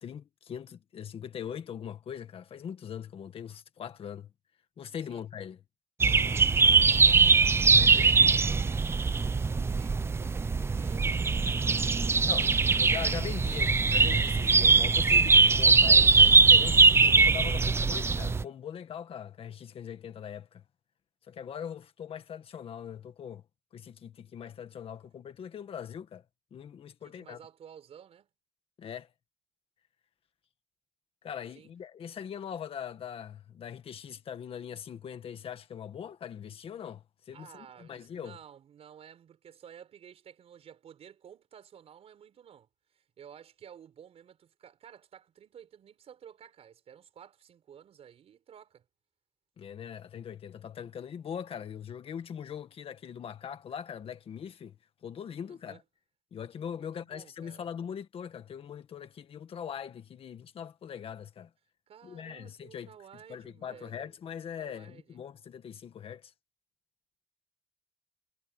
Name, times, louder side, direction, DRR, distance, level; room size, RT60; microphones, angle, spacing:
voice 1, 0.0-4.3 4.8-5.6 7.8-8.0 12.3-12.5 12.8-20.6 21.3-23.4 23.7-26.2 26.5-27.4 28.8-29.1 31.2-38.4 49.6-55.8 56.3-61.5 62.0-62.9 63.3-66.3, left 8 dB, 55° left, 1.7 m, -41 dB
sound 1, 6.0-18.4, right 4 dB, 20° right, 0.5 m, -22 dB
voice 2, 7.6-13.0 27.0-28.3 31.5-31.7 37.3-48.8 55.5-55.8 56.8-57.7 61.9-65.2, right 8 dB, 60° right, 5.0 m, -53 dB
wide cardioid pair, 155°, 12 cm